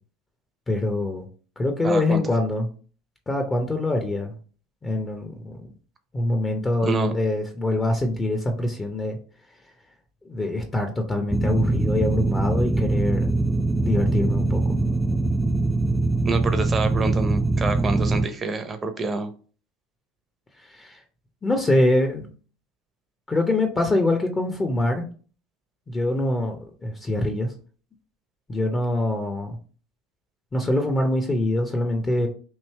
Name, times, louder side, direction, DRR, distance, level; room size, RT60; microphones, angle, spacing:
voice 1, 0.7-1.3 1.6-2.7 3.3-4.3 4.8-5.6 6.1-9.2 10.3-13.3 13.9-14.8 20.7-21.0 21.4-22.3 23.3-25.1 25.9-27.5 28.5-29.6 30.5-32.3, left 1 dB, 25° left, 5 dB, 0.7 m, -24 dB
voice 2, 1.8-2.2 6.8-7.1 16.2-19.3, right 3 dB, 30° right, 9 dB, 0.7 m, -27 dB
sound 1, 11.3-18.3, right 2 dB, 5° right, 0.3 m, -23 dB
3.2 x 2.7 x 4.3 m, 0.40 s
hypercardioid pair, 80°, 0 cm